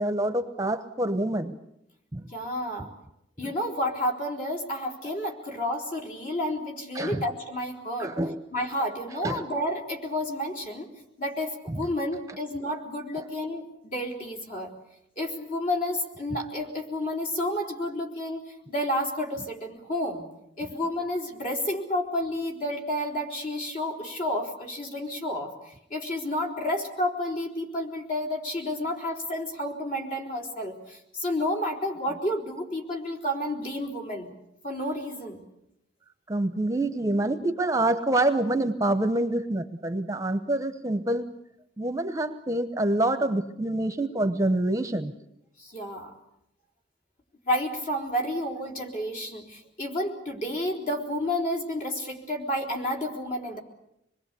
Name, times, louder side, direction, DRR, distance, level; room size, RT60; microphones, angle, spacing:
voice 1, 0.0-1.5 2.1-2.2 6.9-7.2 8.0-8.4 9.2-9.4 36.3-41.3 41.8-45.1, right 1 dB, 15° right, 9 dB, 1.0 m, -26 dB
voice 2, 2.3-2.9 3.4-8.2 8.5-10.9 11.2-14.7 15.2-20.2 20.6-34.3 34.6-35.4 45.6-46.1 47.5-53.6, left 1 dB, 45° left, 2 dB, 4.3 m, -30 dB
26.5 x 21.5 x 8.4 m, 0.80 s
head